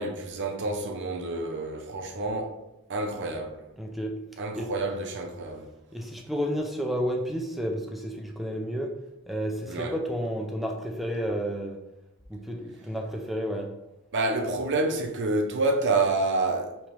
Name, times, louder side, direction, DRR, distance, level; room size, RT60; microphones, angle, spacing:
voice 1, 0.0-2.6 2.9-3.6 4.4-5.7 9.7-10.0 14.1-16.9, right 2 dB, 50° right, 0.6 m, -28 dB
voice 2, 3.8-4.1 4.6-4.7 5.9-9.0 9.3-11.8 12.3-13.7, equal, ahead, 0.4 m, -31 dB
5.1 x 3.0 x 3.0 m
head